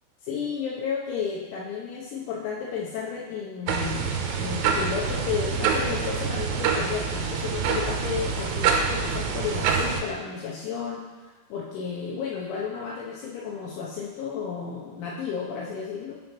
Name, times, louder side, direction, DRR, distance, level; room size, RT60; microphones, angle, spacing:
voice 1, 0.2-16.2, left 6 dB, 80° left, -4 dB, 3.0 m, -33 dB
sound 1, 3.7-10.0, right 6 dB, 85° right, 3.2 m, -26 dB
9.5 x 5.4 x 3.0 m, 1.2 s
omnidirectional pair, 5.8 m